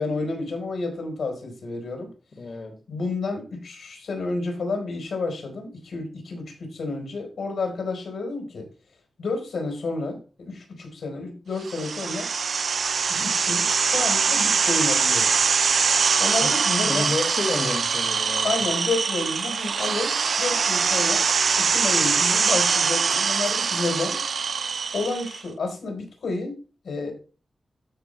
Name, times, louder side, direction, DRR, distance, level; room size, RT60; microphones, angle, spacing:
voice 1, 0.0-2.1 2.9-8.7 9.2-12.3 13.1-15.3 16.2-17.1 18.4-21.2 21.6-24.2 24.9-26.6 26.8-27.1, left 3 dB, 80° left, 3 dB, 3.7 m, -30 dB
voice 2, 2.3-2.8 16.4-18.6, left 3 dB, 45° left, 3 dB, 1.8 m, -30 dB
sound 1, 11.6-25.4, right 5 dB, 65° right, 0.5 m, -23 dB
13.5 x 5.0 x 3.2 m, 0.34 s
wide cardioid pair, 145°, 0 cm